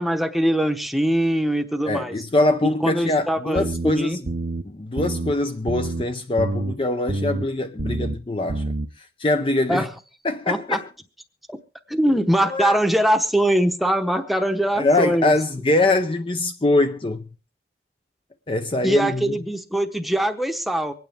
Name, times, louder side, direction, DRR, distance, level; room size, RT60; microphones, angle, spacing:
voice 1, 0.0-2.2 2.8-4.2 9.7-9.9 10.5-10.8 11.5-11.6 11.9-15.3 18.8-20.9, right 1 dB, ahead, 0.9 m, -22 dB
voice 2, 1.8-4.2 4.6-8.7 9.2-9.9 10.2-10.8 12.5-12.8 14.8-17.3 18.5-19.3, left 2 dB, 30° left, 0.5 m, -23 dB
sound 1, 3.6-3.9 4.3-4.6 5.0-5.3 5.7-6.0 6.4-6.7 7.1-7.4 7.8-8.2 8.5-8.9, right 2 dB, 55° right, 0.6 m, -27 dB
24.5 x 9.3 x 3.4 m
head